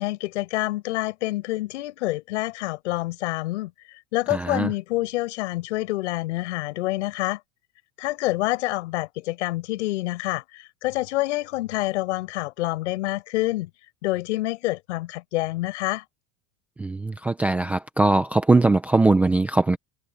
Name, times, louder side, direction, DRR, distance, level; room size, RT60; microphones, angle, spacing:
voice 1, 0.0-7.4 8.0-13.7 14.0-16.0, left 18 dB, 75° left, 5.8 m, -27 dB
voice 2, 4.3-4.7 16.8-19.8, right 2 dB, 5° right, 0.5 m, -20 dB
supercardioid pair, 175°, 36 cm